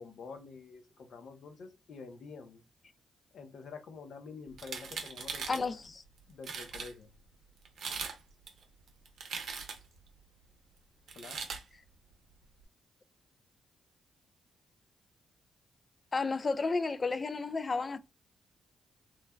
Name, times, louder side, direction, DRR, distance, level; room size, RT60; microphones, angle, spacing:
voice 1, 0.0-2.6 3.3-5.7 6.3-7.1 11.1-11.4, left 4 dB, 65° left, 0.7 m, -47 dB
sound 1, 4.5-5.7 6.2-6.3 6.4-6.9 7.7-8.2 8.5-10.0 11.1-11.6, right 5 dB, 70° right, 0.6 m, -40 dB
voice 2, 5.5-5.8 16.1-18.0, left 4 dB, 40° left, 0.3 m, -31 dB
3.1 x 2.1 x 2.3 m
supercardioid pair, 55°, 0 cm